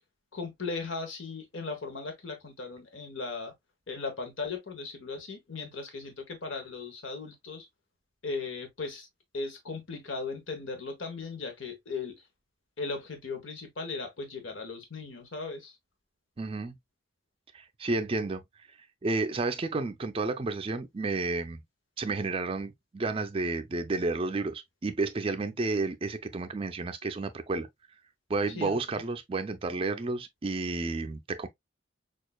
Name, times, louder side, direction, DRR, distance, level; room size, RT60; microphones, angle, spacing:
voice 1, 0.3-3.5 3.9-7.7 8.2-9.1 9.3-12.3 12.8-15.8 28.5-28.8, left 4 dB, 80° left, 1.0 m, -37 dB
voice 2, 16.4-16.7 17.5-21.6 22.0-27.7 28.3-31.5, right 3 dB, 30° right, 0.4 m, -31 dB
6.3 x 2.4 x 2.2 m
head